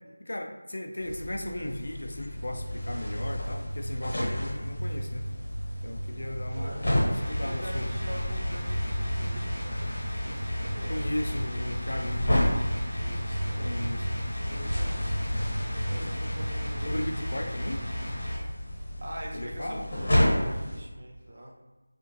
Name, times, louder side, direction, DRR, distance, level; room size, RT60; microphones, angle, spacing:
voice 1, 0.2-5.3 5.8-6.8 7.3-8.0 10.9-12.6 13.6-14.1 16.8-17.8 19.3-19.9, left 1 dB, 65° left, 4 dB, 0.4 m, -36 dB
sound 1, 1.0-20.8, left 1 dB, 40° left, 1.2 m, -33 dB
sound 2, 2.3-17.1, equal, 70° right, 0.9 m, -35 dB
voice 2, 6.5-6.9 7.4-9.9 10.2-11.1 13.0-13.8 14.4-17.0 19.0-21.5, right 1 dB, 35° right, -2 dB, 0.5 m, -44 dB
sound 3, 7.1-18.4, equal, 20° left, 1.0 m, -34 dB
3.7 x 2.5 x 3.0 m, 1.2 s
figure-of-eight pair, 175°, 0 cm